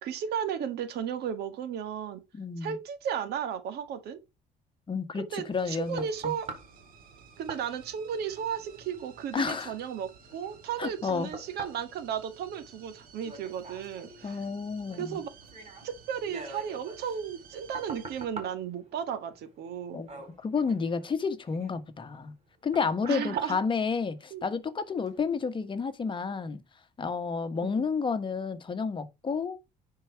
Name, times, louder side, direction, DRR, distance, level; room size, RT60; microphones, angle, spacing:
voice 1, 0.0-2.2 2.6-4.2 5.1-6.5 7.4-14.4 15.0-15.3 15.8-20.0 23.1-23.6 24.3-24.5 27.6-27.9, right 8 dB, 75° right, 1.7 m, -34 dB
voice 2, 2.3-2.8 4.9-6.3 9.3-9.7 10.8-11.3 14.2-15.2 19.9-20.1 20.4-22.3 22.6-26.6 27.0-29.6, left 5 dB, 30° left, 1.2 m, -31 dB
sound 1, 5.3-24.6 25.1-25.2, right 3 dB, 40° right, 4.3 m, -48 dB
sound 2, 5.5-18.3, right 6 dB, 55° right, 2.3 m, -55 dB
10.0 x 4.8 x 4.7 m
cardioid pair, 110°, 17 cm